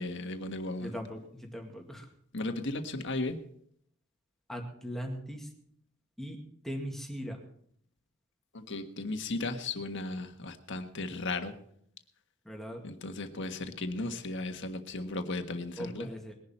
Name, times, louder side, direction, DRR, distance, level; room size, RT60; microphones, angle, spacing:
voice 1, 0.0-1.0 2.3-3.4 8.5-11.5 12.8-16.1, left 2 dB, 60° left, 6 dB, 1.5 m, -35 dB
voice 2, 0.8-2.1 4.5-5.5 6.2-6.4 6.6-7.4 12.4-12.8 15.8-16.3, equal, ahead, 2 dB, 2.1 m, -39 dB
20.5 x 11.0 x 4.3 m, 0.67 s
head